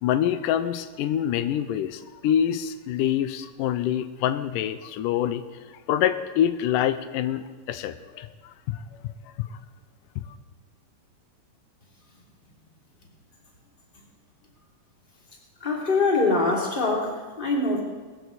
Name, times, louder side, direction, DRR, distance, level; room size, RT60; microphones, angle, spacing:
voice 1, 0.0-5.4 5.9-8.3 8.7-9.1 9.4-9.5, left 10 dB, 90° left, 11 dB, 2.3 m, -26 dB
voice 2, 15.6-17.8, left 3 dB, 15° left, -2 dB, 2.9 m, -23 dB
19.5 x 14.5 x 4.1 m, 1.4 s
omnidirectional pair, 3.8 m